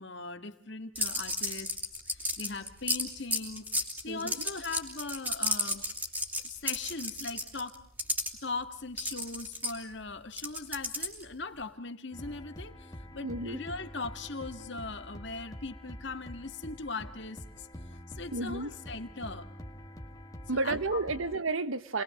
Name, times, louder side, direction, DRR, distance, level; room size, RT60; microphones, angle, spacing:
voice 1, 0.0-1.7 2.1-5.9 6.4-7.8 8.4-19.5 20.6-21.0, left 3 dB, 55° left, 9 dB, 1.9 m, -40 dB
sound 1, 1.0-8.3 9.0-11.3, equal, 10° right, 3.2 m, -32 dB
sound 2, 12.1-21.4, equal, 15° left, 2.0 m, -46 dB
voice 2, 13.2-13.6 18.3-18.7 20.5-22.0, right 3 dB, 80° right, 12 dB, 1.4 m, -31 dB
29.5 x 21.5 x 7.6 m, 0.62 s
head